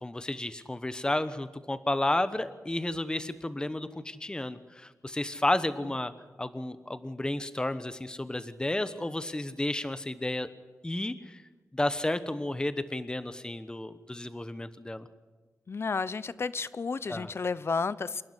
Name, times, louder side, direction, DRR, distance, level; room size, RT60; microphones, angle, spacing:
voice 1, 0.0-6.1 6.4-10.5 10.8-11.4 11.7-15.1 17.1-17.3, left 1 dB, 15° left, 12 dB, 1.1 m, -32 dB
voice 2, 15.7-18.2, left 4 dB, 50° left, 17 dB, 0.8 m, -32 dB
28.0 x 11.5 x 9.9 m, 1.3 s
wide cardioid pair, 100°, 6 cm